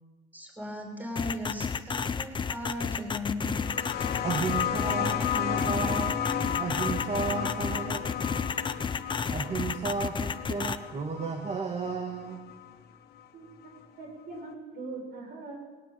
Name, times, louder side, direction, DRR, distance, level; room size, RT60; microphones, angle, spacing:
voice 1, 0.3-3.6, left 1 dB, 10° right, 2 dB, 6.1 m, -37 dB
sound 1, 1.2-10.8, left 5 dB, 30° left, 1.0 m, -31 dB
sound 2, 3.4-12.7 13.8-13.9, left 9 dB, 70° left, 2.3 m, -33 dB
voice 2, 4.2-6.2 6.6-8.0 8.5-8.9 9.3-12.4, right 4 dB, 35° right, 3 dB, 2.4 m, -33 dB
voice 3, 14.0-15.6, right 3 dB, 65° right, 2 dB, 6.5 m, -41 dB
19.5 x 17.5 x 8.9 m, 1.4 s
cardioid pair, 110°, 17 cm